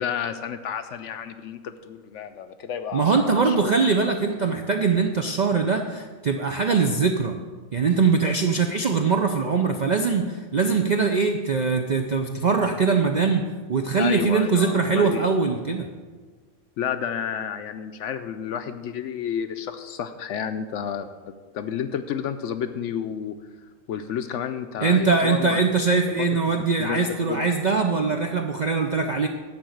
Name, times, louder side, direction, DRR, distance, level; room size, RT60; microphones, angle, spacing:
voice 1, 0.0-3.7 14.0-15.3 16.8-21.1 21.5-23.4 23.9-25.7 26.2-26.4 26.8-27.0 27.3-27.4, left 8 dB, 70° left, 9 dB, 0.8 m, -31 dB
voice 2, 2.9-7.4 7.7-13.4 13.7-15.9 24.8-29.3, right 4 dB, 60° right, 4 dB, 0.4 m, -22 dB
11.5 x 4.1 x 7.8 m, 1.4 s
omnidirectional pair, 1.5 m